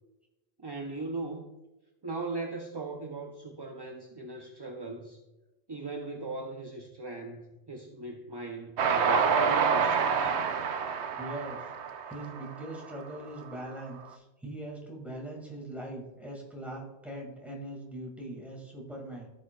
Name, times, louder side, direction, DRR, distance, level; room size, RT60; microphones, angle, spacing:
voice 1, 0.6-1.5 2.0-5.2 5.7-10.4, right 3 dB, 30° right, 3 dB, 0.5 m, -39 dB
Train, 8.8-13.2, right 6 dB, 90° right, 0.9 m, -27 dB
voice 2, 11.1-11.7 12.1-19.3, right 1 dB, ahead, -1 dB, 1.8 m, -41 dB
15.0 x 5.2 x 2.3 m, 1.0 s
omnidirectional pair, 1.1 m